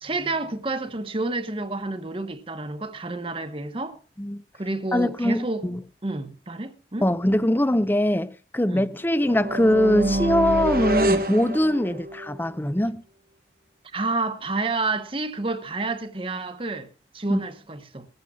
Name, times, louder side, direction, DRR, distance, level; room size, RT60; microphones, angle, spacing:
voice 1, 0.0-4.0 4.6-5.7 6.0-7.1 8.7-8.9 13.9-16.9 17.1-18.1, right 3 dB, 30° right, 1.0 m, -29 dB
voice 2, 4.9-5.8 7.0-13.0 17.3-17.4, left 1 dB, 10° left, 0.6 m, -22 dB
sound 1, 9.2-12.3, right 1 dB, 55° right, 1.1 m, -26 dB
19.5 x 14.5 x 2.3 m
head